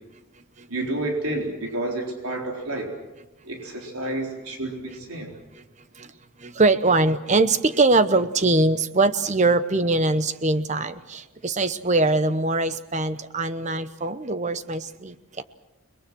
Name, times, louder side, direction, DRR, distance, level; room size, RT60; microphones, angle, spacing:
voice 1, 0.7-2.9 3.4-5.3, right 1 dB, 85° right, 1 dB, 4.1 m, -30 dB
voice 2, 6.4-15.4, right 2 dB, 35° right, 12 dB, 0.9 m, -22 dB
30.0 x 21.0 x 6.2 m, 0.98 s
head